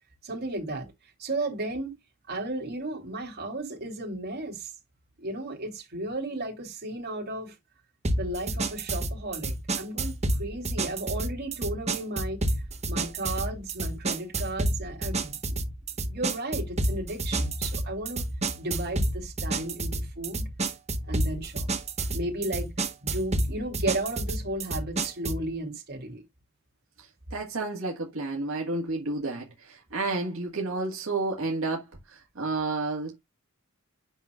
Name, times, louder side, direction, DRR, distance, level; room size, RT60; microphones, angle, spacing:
voice 1, 0.2-0.9 1.2-1.9 2.3-4.7 5.2-7.5 8.1-12.4 12.8-15.6 16.0-18.2 18.6-20.4 21.1-21.7 22.1-22.7 23.0-26.2, right 1 dB, 50° right, 3.2 m, -34 dB
sound 1, 8.0-25.5, right 2 dB, 30° right, 1.1 m, -30 dB
voice 2, 27.0-33.2, right 3 dB, 75° right, 1.8 m, -31 dB
9.1 x 5.7 x 2.4 m
head